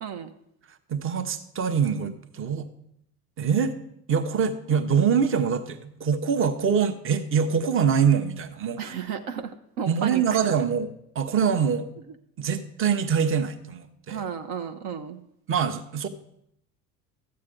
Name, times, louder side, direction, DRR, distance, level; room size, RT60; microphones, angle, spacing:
voice 1, 0.0-0.3 8.8-10.4 14.1-15.2, right 7 dB, 55° right, 7 dB, 0.8 m, -33 dB
voice 2, 0.7-2.7 3.4-3.7 4.1-8.9 9.9-11.9 12.4-14.3 15.5-16.1, right 7 dB, 30° right, 9 dB, 0.9 m, -24 dB
13.0 x 8.5 x 3.7 m, 0.76 s
figure-of-eight pair, 65°, 46 cm